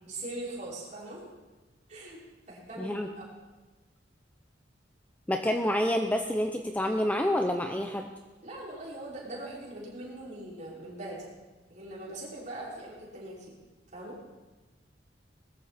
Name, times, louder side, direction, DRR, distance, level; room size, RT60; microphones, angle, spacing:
voice 1, 0.0-1.2 1.9-2.2 2.5-3.4 8.4-11.3 11.7-13.6 13.9-14.2, right 1 dB, 40° right, -6 dB, 5.6 m, -41 dB
voice 2, 2.8-3.1 5.3-8.1, left 1 dB, 10° left, 4 dB, 0.7 m, -28 dB
20.0 x 14.0 x 4.3 m, 1.2 s
head